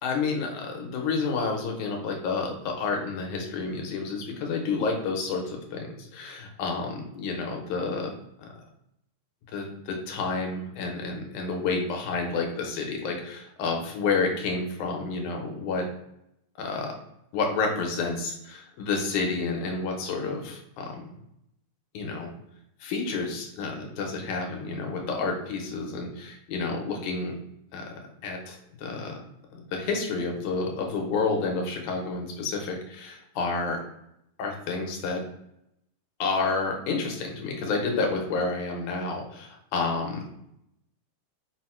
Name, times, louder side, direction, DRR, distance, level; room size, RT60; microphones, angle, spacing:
voice 1, 0.0-8.1 8.4-8.5 9.5-15.9 16.6-16.9 17.3-21.0 21.9-22.3 22.8-27.4 27.7-27.8 28.2-29.1 29.5-33.8 34.4-35.2 36.2-40.3, left 4 dB, 85° left, 1 dB, 2.3 m, -30 dB
5.1 x 2.0 x 4.3 m, 0.79 s
omnidirectional pair, 3.4 m